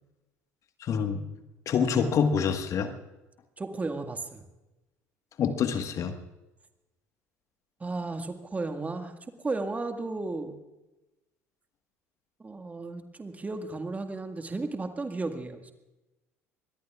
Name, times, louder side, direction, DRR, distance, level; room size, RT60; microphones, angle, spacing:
voice 1, 0.8-1.2 1.6-2.9 5.4-6.1, left 6 dB, 45° left, 8 dB, 1.5 m, -26 dB
voice 2, 3.6-4.4 7.8-9.1 9.4-10.5 12.4-15.7, right 3 dB, 20° right, 6 dB, 1.8 m, -34 dB
24.5 x 21.0 x 2.4 m, 1.0 s
figure-of-eight pair, 60°, 8 cm